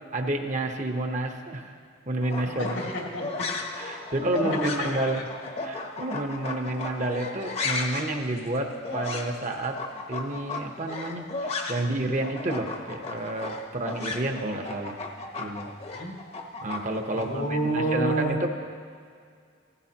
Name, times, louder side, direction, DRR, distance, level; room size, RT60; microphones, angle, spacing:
voice 1, 0.1-1.7 2.1-2.8 3.8-5.2 5.6-9.8 10.1-15.0 15.4-15.7 16.6-18.5, right 1 dB, 40° right, 4 dB, 0.9 m, -30 dB
sound 1, 2.2-12.0 12.2-17.3, left 3 dB, 35° left, 0.9 m, -35 dB
voice 2, 2.6-3.5 4.4-5.2 15.8-16.2 17.1-18.4, right 1 dB, 85° left, -2 dB, 2.5 m, -29 dB
16.0 x 15.0 x 2.9 m, 2.2 s
head